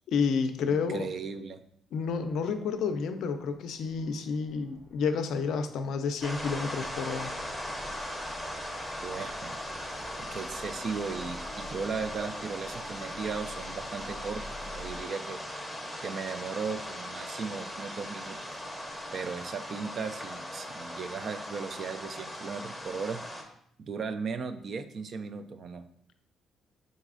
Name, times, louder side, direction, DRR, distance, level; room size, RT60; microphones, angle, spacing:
voice 1, 0.1-1.1 1.9-7.4, left 5 dB, 80° left, 8 dB, 0.4 m, -30 dB
voice 2, 0.7-1.6 9.0-9.6 10.2-15.4 16.0-18.4 19.1-23.2 23.8-25.8, right 5 dB, 55° right, 10 dB, 0.3 m, -36 dB
sound 1, 2.0-19.4, right 3 dB, 70° right, 1.0 m, -54 dB
sound 2, 6.2-23.4, left 1 dB, 5° right, 0.7 m, -39 dB
sound 3, 6.3-15.0, left 1 dB, 40° right, 0.8 m, -48 dB
4.0 x 3.8 x 2.4 m, 0.67 s
cardioid pair, 90°, 0 cm